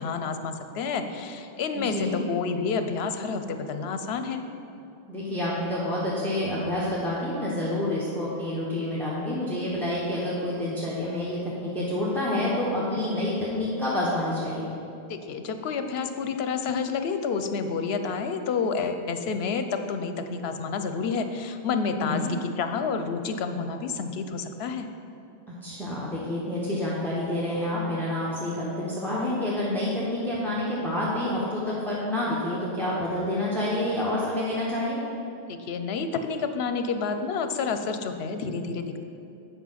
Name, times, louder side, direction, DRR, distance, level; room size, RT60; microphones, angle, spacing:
voice 1, 0.0-4.4 15.1-24.9 35.5-39.0, left 5 dB, 75° left, 8 dB, 0.9 m, -29 dB
voice 2, 1.7-2.2 5.1-14.7 22.0-22.3 25.5-35.0, left 1 dB, ahead, -7 dB, 1.1 m, -28 dB
8.5 x 5.4 x 5.8 m, 2.7 s
omnidirectional pair, 1.1 m